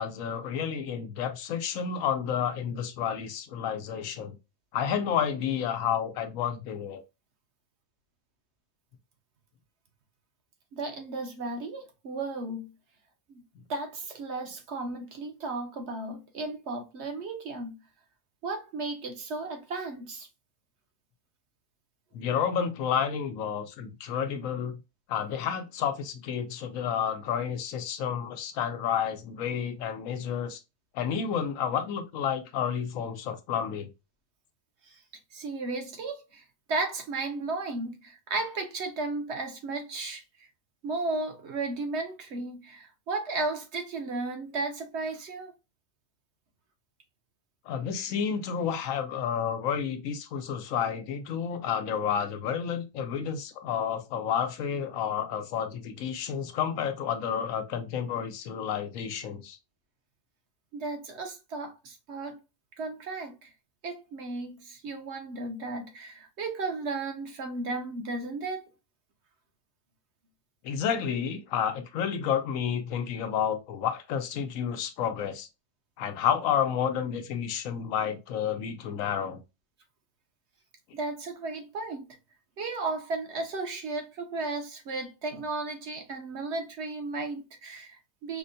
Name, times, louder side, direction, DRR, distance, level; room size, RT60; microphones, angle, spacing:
voice 1, 0.0-4.3 4.7-7.0 22.1-24.8 25.1-30.6 30.9-33.9 47.7-59.6 70.6-75.5 76.0-79.4, left 8 dB, 85° left, 1.0 m, -30 dB
voice 2, 10.7-12.7 13.3-13.4 13.7-17.7 18.4-20.3 34.9-35.0 35.3-36.4 36.7-40.2 40.8-45.5 60.7-62.4 62.8-63.5 63.8-68.7 80.9-82.1 82.6-88.4, right 3 dB, 60° right, 1.1 m, -34 dB
5.1 x 2.1 x 2.6 m
omnidirectional pair, 1.4 m